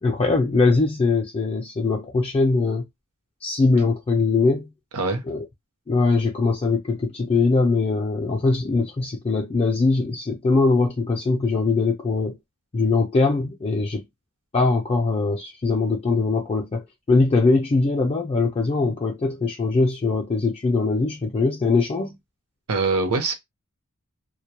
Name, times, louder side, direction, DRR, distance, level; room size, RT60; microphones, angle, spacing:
voice 1, 0.0-2.8 3.4-4.7 5.3-5.4 5.9-12.4 12.7-14.0 14.5-16.8 17.1-22.2, left 3 dB, 25° left, 0.4 m, -21 dB
voice 2, 22.7-23.3, right 3 dB, 70° right, 0.7 m, -23 dB
2.2 x 2.0 x 2.8 m
head